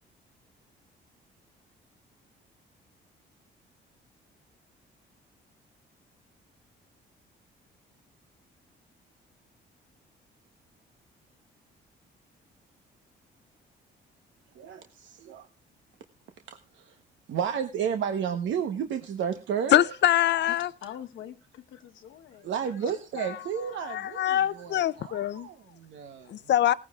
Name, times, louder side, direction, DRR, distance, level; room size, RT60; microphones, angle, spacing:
voice 1, 14.5-15.5 16.5-17.0 17.3-19.8 22.4-26.5, right 8 dB, 75° right, 1.1 m, -32 dB
voice 2, 19.7-20.7 23.2-23.4 23.8-25.5 26.3-26.7, left 12 dB, 60° left, 0.6 m, -24 dB
voice 3, 20.5-22.5, left 10 dB, 80° left, 1.2 m, -44 dB
18.0 x 14.5 x 2.4 m
cardioid pair, 90°, 20 cm